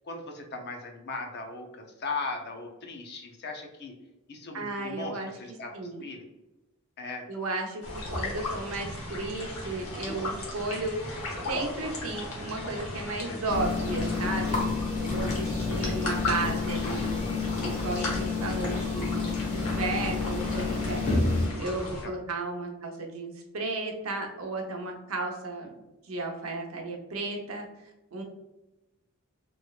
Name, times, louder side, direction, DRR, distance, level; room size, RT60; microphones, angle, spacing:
voice 1, 0.0-3.9 4.3-6.2 7.0-7.3 22.0-22.1, left 3 dB, 50° left, 2 dB, 0.6 m, -38 dB
voice 2, 4.5-5.3 5.7-6.1 7.3-7.8 8.1-11.0 11.5-14.6 15.0-17.1 17.6-21.1 21.6-25.7 26.0-27.6 28.1-28.2, right 2 dB, 75° right, 1 dB, 0.7 m, -34 dB
Fish Splashing Pond, 7.8-22.0, left 1 dB, 85° left, 1.1 m, -36 dB
sound 1, 13.5-21.5, left 4 dB, 35° left, 1.0 m, -29 dB
sound 2, 15.2-17.0, equal, 15° left, 0.4 m, -41 dB
3.1 x 3.0 x 2.4 m, 1.0 s
head